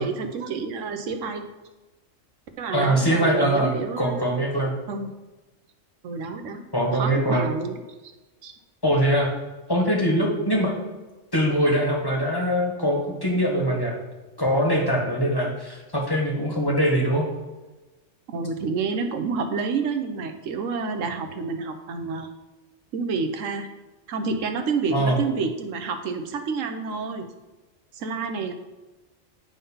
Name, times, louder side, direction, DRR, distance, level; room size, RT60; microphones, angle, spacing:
voice 1, 0.0-1.4 2.6-4.3 4.9-5.1 6.0-6.6 6.9-7.7 8.0-8.1 8.4-8.5 14.9-15.0 18.3-22.3 22.9-23.7 24.1-27.3 27.9-28.5, right 5 dB, 80° right, 6 dB, 1.1 m, -29 dB
voice 2, 2.7-4.8 6.7-7.4 8.8-9.3 9.7-10.7 11.3-14.0 14.4-17.3 24.9-25.2, equal, 20° left, -2 dB, 1.6 m, -22 dB
9.6 x 3.7 x 5.5 m, 1.1 s
omnidirectional pair, 1.3 m